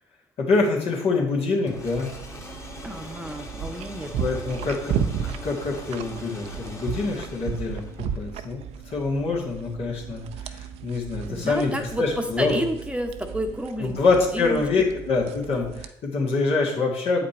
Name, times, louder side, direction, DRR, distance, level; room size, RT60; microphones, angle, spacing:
voice 1, 0.4-2.1 4.2-5.0 5.4-8.6 8.9-11.7 12.0-12.6 13.8-17.3, left 3 dB, 65° left, -1 dB, 2.0 m, -25 dB
sound 1, 1.7-8.2, left 2 dB, 25° left, 1.6 m, -42 dB
sound 2, 1.8-15.9, right 7 dB, 75° right, 0.5 m, -35 dB
voice 2, 2.8-4.3 11.3-14.6, right 1 dB, 10° right, 5 dB, 0.9 m, -30 dB
7.6 x 5.0 x 4.3 m, 0.75 s
supercardioid pair, 65°, 11 cm